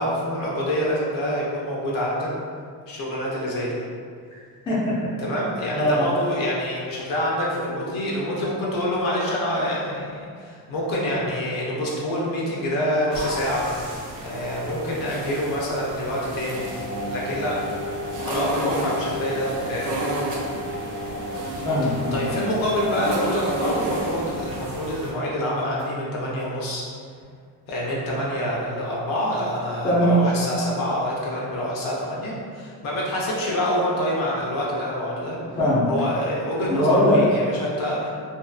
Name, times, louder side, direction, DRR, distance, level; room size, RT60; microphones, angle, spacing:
voice 1, 0.0-2.3 2.9-3.8 5.2-13.7 14.2-16.7 17.1-17.7 18.2-20.0 22.1-26.8 27.7-35.4 35.9-38.1, equal, 70° left, -5 dB, 0.7 m, -26 dB
voice 2, 4.7-5.0 5.3-5.4 5.7-6.1 21.6-22.3 29.8-30.2 35.2-35.3 35.6-35.9 36.7-37.2, equal, 15° left, -8 dB, 0.4 m, -21 dB
sound 1, 13.1-25.1, right 1 dB, 55° right, 0.5 m, -33 dB
sound 2, 16.4-24.6 25.8-25.9, left 1 dB, 40° left, 1.3 m, -33 dB
2.7 x 2.4 x 2.3 m, 2.2 s
cardioid pair, 165°, 36 cm